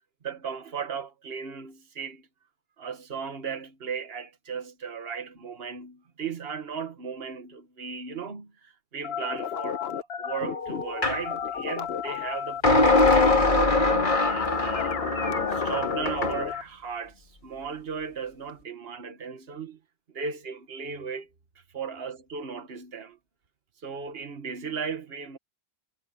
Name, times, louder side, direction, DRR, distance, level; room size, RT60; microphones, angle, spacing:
voice 1, 0.2-2.3 2.8-15.0 15.5-19.8 20.1-21.3 21.7-23.2 23.8-25.4, right 6 dB, 65° right, 1.6 m, -36 dB
sound 1, 9.0-16.6, left 8 dB, 70° left, 1.1 m, -33 dB
sound 2, 11.0-11.2 12.6-16.4, left 2 dB, 45° left, 2.5 m, -22 dB
omnidirectional pair, 1.1 m